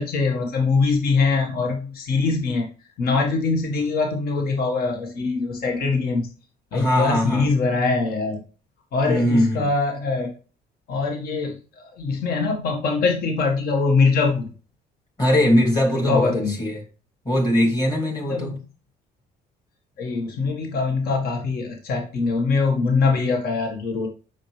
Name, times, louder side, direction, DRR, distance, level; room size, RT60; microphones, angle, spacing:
voice 1, 0.0-2.7 3.0-6.2 6.7-8.4 8.9-10.3 10.9-14.5 15.9-16.6 18.3-18.6 20.0-24.1, left 4 dB, 65° left, 2 dB, 1.6 m, -23 dB
voice 2, 6.7-7.5 9.1-9.7 15.2-16.3 16.6-16.8 17.3-18.5, left 1 dB, 25° left, -1 dB, 2.5 m, -20 dB
7.5 x 6.3 x 3.3 m, 0.36 s
cardioid pair, 110°, 17 cm